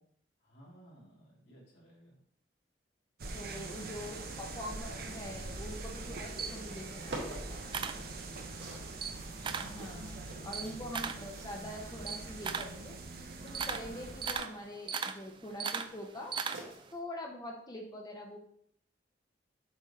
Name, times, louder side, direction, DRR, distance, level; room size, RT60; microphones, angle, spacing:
voice 1, 0.4-2.2 6.0-6.3 7.7-8.7 10.3-10.5, right 1 dB, 75° left, -4 dB, 2.6 m, -58 dB
sound 1, 3.2-14.4, right 3 dB, 55° right, 0.8 m, -44 dB
voice 2, 3.3-7.6 9.6-13.0 13.4-16.4 16.9-18.4, left 1 dB, 20° left, 1 dB, 0.8 m, -44 dB
Camera, 6.0-8.6 8.9-9.8 10.2-16.9, right 6 dB, 25° right, 0.3 m, -39 dB
sound 2, 6.3-17.0, right 2 dB, 90° right, 1.5 m, -51 dB
7.3 x 3.5 x 4.3 m, 0.68 s
head